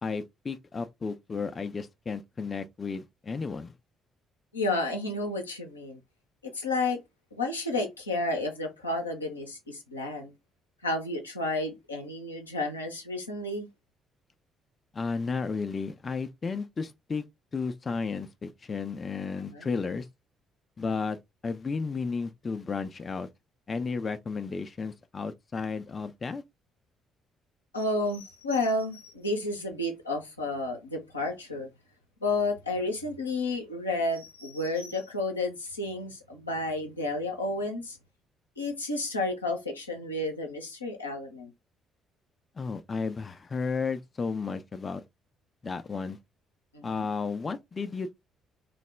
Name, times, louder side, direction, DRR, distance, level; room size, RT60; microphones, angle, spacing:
voice 1, 0.0-3.7 14.9-17.2 17.5-20.1 20.8-21.2 21.4-23.3 23.7-26.4 42.6-45.0 45.6-46.2 46.8-48.1, left 4 dB, 35° left, 0.4 m, -33 dB
voice 2, 4.5-6.0 6.4-7.0 7.3-10.3 10.8-13.7 19.5-19.7 27.7-31.7 32.2-38.0 38.6-41.5 46.7-47.0, left 2 dB, 90° left, 0.6 m, -31 dB
3.2 x 2.1 x 3.3 m
figure-of-eight pair, 45°, 0 cm